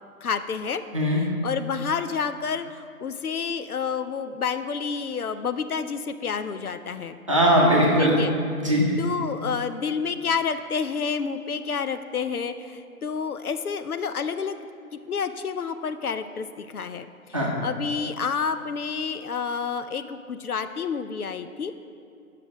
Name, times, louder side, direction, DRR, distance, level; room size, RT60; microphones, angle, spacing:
voice 1, 0.2-0.8 1.4-7.2 8.0-8.4 9.0-14.6 15.1-17.1 17.4-21.7, left 6 dB, 70° left, 10 dB, 0.6 m, -29 dB
voice 2, 7.3-8.2 8.6-8.8 17.3-17.5, equal, 20° right, -5 dB, 0.9 m, -19 dB
8.9 x 5.8 x 5.0 m, 2.4 s
figure-of-eight pair, 160°, 45 cm